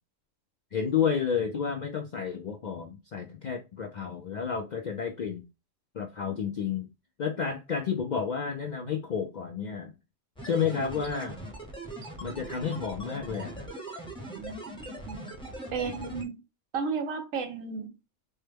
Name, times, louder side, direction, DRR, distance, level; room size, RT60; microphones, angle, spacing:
voice 1, 0.7-5.4 5.9-6.9 7.2-9.9 10.4-11.4 12.2-13.7, left 7 dB, 65° left, 0.4 m, -31 dB
sound 1, 10.4-16.2, right 1 dB, 5° left, 0.7 m, -41 dB
voice 2, 14.3-15.2 15.7-16.4 16.7-17.9, right 5 dB, 85° right, 1.3 m, -34 dB
4.4 x 2.2 x 3.3 m
omnidirectional pair, 1.3 m